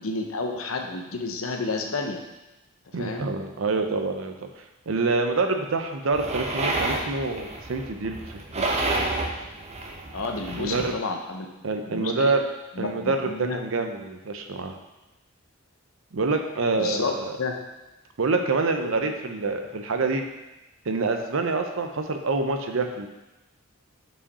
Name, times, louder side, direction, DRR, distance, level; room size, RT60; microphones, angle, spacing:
voice 1, 0.0-2.2 3.0-3.3 10.1-11.5 11.9-12.3 12.7-13.6 16.7-17.1 17.4-17.5, left 3 dB, 90° left, 3 dB, 0.8 m, -30 dB
voice 2, 2.9-4.5 4.9-8.9 10.5-10.9 11.6-12.4 12.8-14.7 16.1-17.3 18.2-20.2 20.9-23.1, right 3 dB, 75° right, 5 dB, 0.6 m, -26 dB
sound 1, 6.1-10.9, right 2 dB, 30° right, 0.7 m, -30 dB
5.6 x 4.8 x 4.2 m, 1.0 s
head